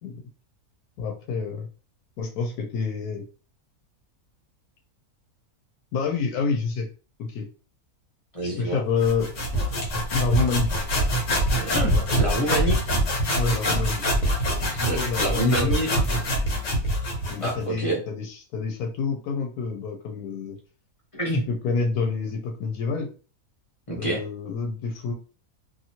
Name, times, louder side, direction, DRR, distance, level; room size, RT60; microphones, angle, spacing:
voice 1, 1.0-1.7 2.2-3.2 5.9-6.9 7.2-7.5 8.6-9.3 10.1-10.7 13.3-14.0 15.0-15.8 17.3-20.6 21.5-23.1 24.0-25.1, left 4 dB, 85° left, 3 dB, 1.1 m, -28 dB
voice 2, 8.3-8.8 11.5-12.8 14.8-15.9 17.4-18.0 21.1-21.4 23.9-24.2, right 1 dB, 30° left, -3 dB, 0.7 m, -27 dB
sound 1, 9.0-17.6, equal, 60° left, 1.2 m, -24 dB
2.9 x 2.6 x 2.8 m, 0.36 s
omnidirectional pair, 1.5 m